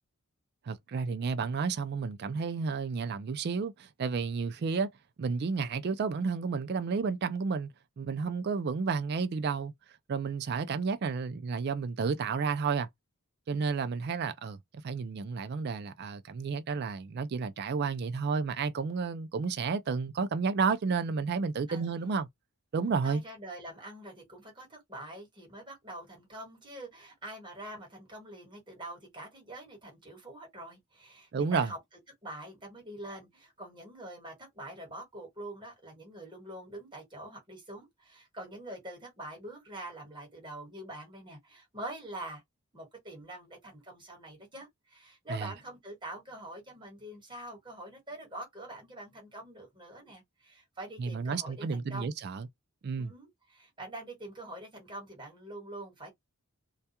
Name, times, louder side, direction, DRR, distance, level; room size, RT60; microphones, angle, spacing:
voice 1, 0.7-4.9 5.2-7.7 8.0-9.7 10.1-12.9 13.5-14.6 14.8-22.3 22.7-23.2 31.3-31.7 45.3-45.5 51.0-52.5 52.8-53.1, right 5 dB, 45° right, 0.3 m, -31 dB
voice 2, 21.7-22.2 23.0-31.8 32.2-42.4 42.7-52.1 53.0-56.1, right 1 dB, 20° right, 1.3 m, -45 dB
2.3 x 2.2 x 2.8 m
head